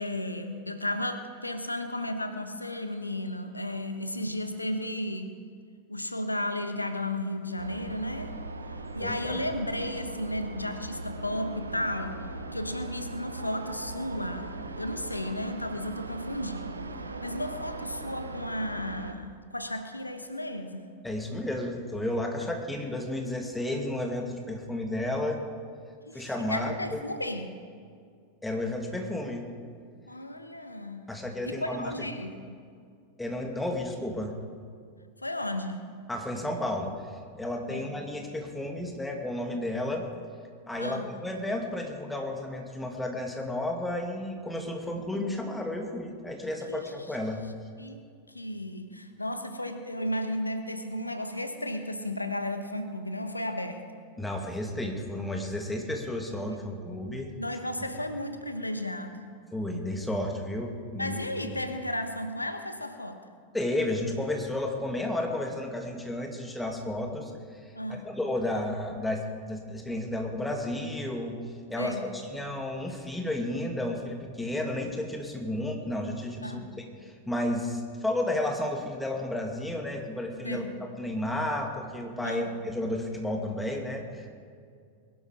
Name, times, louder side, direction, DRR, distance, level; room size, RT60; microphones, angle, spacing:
voice 1, 0.0-5.3 5.9-8.4 8.9-20.9 26.1-27.6 30.1-31.1 31.4-32.6 35.2-35.9 37.7-37.9 40.8-41.1 46.7-46.9 47.8-53.8 56.5-56.6 57.4-59.2 61.0-63.2 67.7-68.1 71.8-72.1 76.4-76.7 80.4-80.8 82.2-82.5, left 1 dB, 85° left, 8 dB, 1.1 m, -34 dB
sound 1, 7.6-19.1, right 3 dB, 75° right, 0.9 m, -39 dB
voice 2, 9.0-9.4 21.0-25.4 26.1-27.0 28.4-29.5 31.1-31.9 33.2-34.3 36.1-37.0 37.4-40.1 40.7-47.4 54.2-57.3 59.5-61.2 61.4-61.5 63.5-67.6 67.9-71.4 71.7-76.8 77.3-80.6 81.0-84.3, left 1 dB, 5° left, 2 dB, 2.2 m, -32 dB
21.5 x 11.5 x 5.0 m, 2.2 s
figure-of-eight pair, 90°, 0 cm